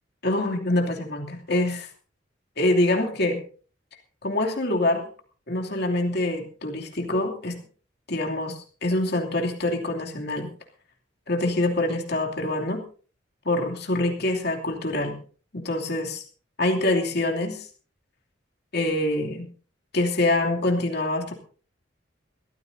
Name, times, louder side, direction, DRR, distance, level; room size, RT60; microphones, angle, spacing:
voice 1, 0.2-1.9 2.6-3.4 4.2-5.1 5.5-7.6 8.1-10.5 11.3-12.8 13.4-15.2 15.5-16.2 16.6-17.7 18.7-19.5 19.9-21.3, left 1 dB, 60° left, 1 dB, 2.7 m, -25 dB
22.0 x 14.5 x 2.7 m, 0.40 s
head